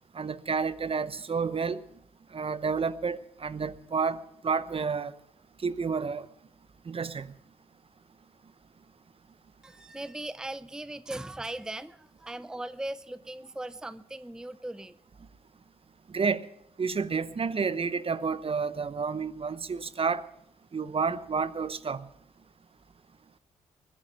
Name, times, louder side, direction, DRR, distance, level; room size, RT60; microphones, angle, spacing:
voice 1, 0.1-1.8 2.3-4.2 4.4-5.1 5.6-6.3 6.9-7.3 16.1-16.5 16.8-20.3 20.7-22.1, right 5 dB, 40° right, 0.8 m, -30 dB
voice 2, 9.6-15.0, right 1 dB, 5° right, 0.6 m, -39 dB
20.5 x 10.0 x 5.9 m
hypercardioid pair, 40°, 15 cm